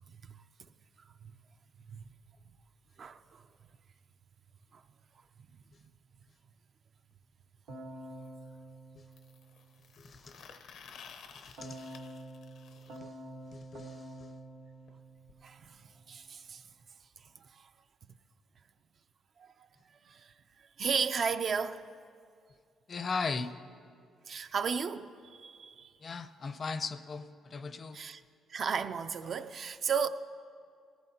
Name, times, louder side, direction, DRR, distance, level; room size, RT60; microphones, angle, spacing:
voice 1, 3.0-3.4 4.7-4.8 15.4-16.6 17.4-17.7 19.4-19.7 20.1-20.3 20.6-21.9 24.3-25.9 27.9-28.2 28.5-30.1, right 6 dB, 55° right, 0.5 m, -35 dB
sound 1, 7.1-7.2 9.1-13.0 14.9-15.0 15.3-15.4 15.6-15.8 16.7-16.8, left 6 dB, 80° left, 0.9 m, -53 dB
Keyboard (musical), 7.7-10.0 11.6-15.9, right 1 dB, 85° right, 1.5 m, -48 dB
voice 2, 10.0-10.4 11.3-12.0 12.9-13.1 13.5-14.3 22.9-23.5 26.0-28.0, left 4 dB, 45° left, 0.6 m, -38 dB
19.0 x 14.5 x 2.8 m
cardioid pair, 90°, 0 cm